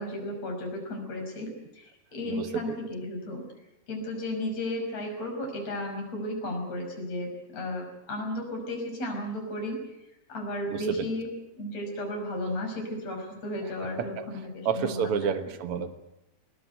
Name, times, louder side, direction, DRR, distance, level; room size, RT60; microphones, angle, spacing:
voice 1, 0.0-3.4 3.9-9.8 10.3-11.3 11.6-15.3, left 1 dB, 40° left, 2 dB, 6.8 m, -34 dB
voice 2, 2.3-2.7 10.7-11.1 14.0-14.3 14.6-15.9, right 7 dB, 55° right, 9 dB, 1.6 m, -30 dB
21.0 x 20.0 x 9.2 m, 0.87 s
omnidirectional pair, 4.3 m